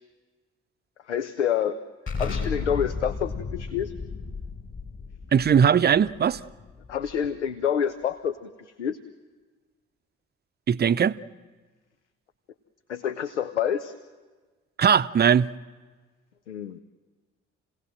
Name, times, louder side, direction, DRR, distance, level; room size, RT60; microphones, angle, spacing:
voice 1, 1.1-1.8 2.2-3.9 6.9-9.0 12.9-13.9 16.5-16.8, left 8 dB, 85° left, 0.6 m, -28 dB
Explosion, 2.1-7.4, left 4 dB, 35° left, 4.5 m, -34 dB
voice 2, 5.3-6.4 10.7-11.1 14.8-15.5, right 7 dB, 30° right, 0.7 m, -19 dB
29.0 x 17.0 x 7.7 m
figure-of-eight pair, 45°, 34 cm